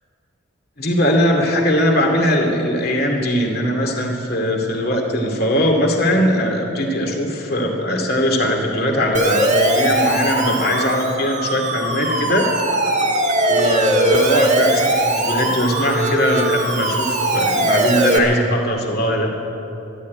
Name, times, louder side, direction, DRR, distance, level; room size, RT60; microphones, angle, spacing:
voice 1, 0.8-12.5 13.5-19.3, equal, 50° left, 1 dB, 2.3 m, -20 dB
Siren, 9.1-18.2, right 1 dB, 35° right, 1.6 m, -20 dB
12.5 x 12.5 x 9.4 m, 2.9 s
head